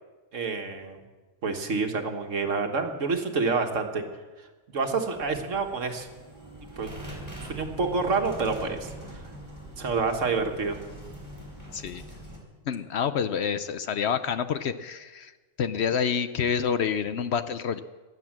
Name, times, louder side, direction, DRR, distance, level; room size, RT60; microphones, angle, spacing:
voice 1, 0.3-1.0 1.4-4.0 4.7-6.1 6.8-7.0 7.3-8.9 9.8-10.8, right 4 dB, 70° right, 5 dB, 1.7 m, -28 dB
sound 1, 5.1-12.4, right 1 dB, 15° right, 3.9 m, -42 dB
voice 2, 12.7-15.3 15.6-17.8, left 7 dB, 60° left, 12 dB, 0.8 m, -28 dB
16.5 x 11.0 x 7.4 m, 1.3 s
omnidirectional pair, 1.4 m